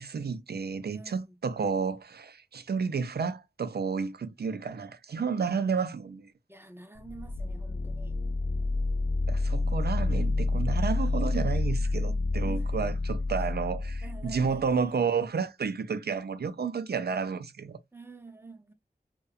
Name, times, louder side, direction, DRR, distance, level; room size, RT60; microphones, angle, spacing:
voice 1, 0.0-6.3 9.3-17.8, right 5 dB, 65° right, 0.4 m, -31 dB
voice 2, 0.9-1.4 6.5-8.1 12.4-12.7 14.0-15.1 17.9-18.7, right 2 dB, 15° right, 0.5 m, -48 dB
sound 1, 6.9-14.7, left 2 dB, 50° left, 0.4 m, -29 dB
2.7 x 2.2 x 2.3 m
wide cardioid pair, 50°, 17 cm